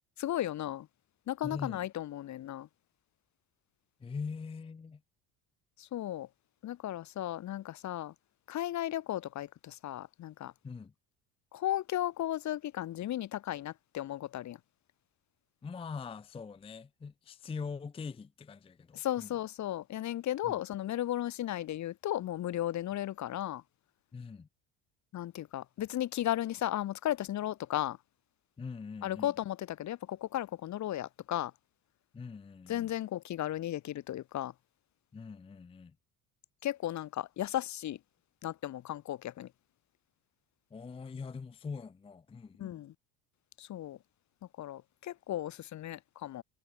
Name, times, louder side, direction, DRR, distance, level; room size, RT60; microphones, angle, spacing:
voice 1, 0.2-0.9 1.3-2.7 5.8-6.3 6.6-8.1 8.5-10.5 11.5-14.6 18.9-23.6 25.1-28.0 29.0-31.5 32.7-34.5 36.6-38.0 38.4-39.5 42.6-42.9 43.6-44.0 44.6-46.4, left 13 dB, 45° left, 1.0 m, -35 dB
voice 2, 1.4-1.8 4.0-5.0 10.6-10.9 15.6-19.3 20.4-20.6 24.1-24.5 28.6-29.3 32.1-32.9 35.1-35.9 40.7-42.8, left 5 dB, 15° left, 0.5 m, -42 dB
supercardioid pair, 95°, 39 cm